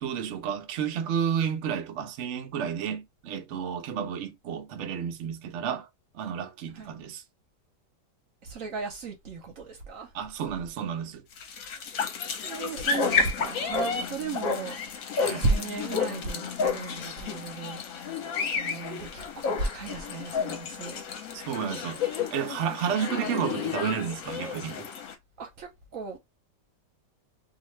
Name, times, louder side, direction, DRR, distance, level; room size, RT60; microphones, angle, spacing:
voice 1, 0.0-5.9 6.1-7.2 10.1-11.2 15.2-15.4 21.3-24.9, right 8 dB, 85° right, 0.6 m, -31 dB
voice 2, 8.4-10.1 12.4-15.0 15.3-18.0 18.5-21.0 25.4-26.2, right 3 dB, 60° right, 0.9 m, -34 dB
sound 1, 11.3-25.1, left 5 dB, 65° left, 0.9 m, -31 dB
2.5 x 2.5 x 3.0 m
omnidirectional pair, 1.9 m